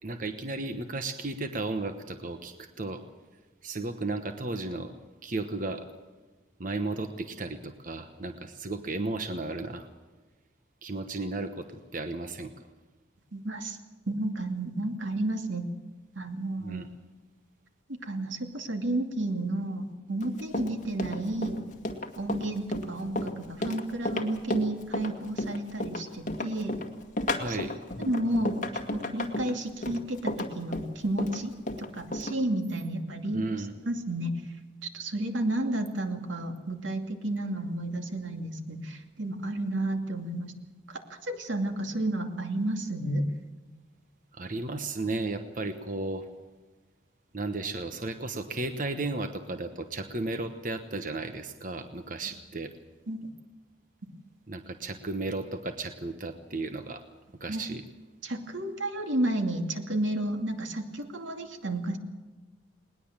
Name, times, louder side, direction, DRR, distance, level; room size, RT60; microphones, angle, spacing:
voice 1, 0.0-3.0 3.6-4.9 5.2-5.9 6.6-9.9 10.8-12.5 16.6-16.9 27.3-27.7 33.3-33.7 44.3-46.3 47.3-52.7 54.5-57.0 57.4-57.8, right 2 dB, 45° right, 8 dB, 1.1 m, -34 dB
voice 2, 13.3-13.8 14.1-15.7 16.1-16.9 18.0-21.6 22.2-26.8 27.5-27.6 28.0-28.6 29.1-31.5 31.8-33.5 33.9-34.4 34.8-40.5 40.9-43.3 53.1-53.2 57.5-57.6 58.2-62.0, right 1 dB, 85° right, 5 dB, 2.5 m, -31 dB
Run, 20.2-32.4, left 1 dB, 40° left, 2.0 m, -33 dB
20.5 x 20.0 x 7.4 m, 1.3 s
head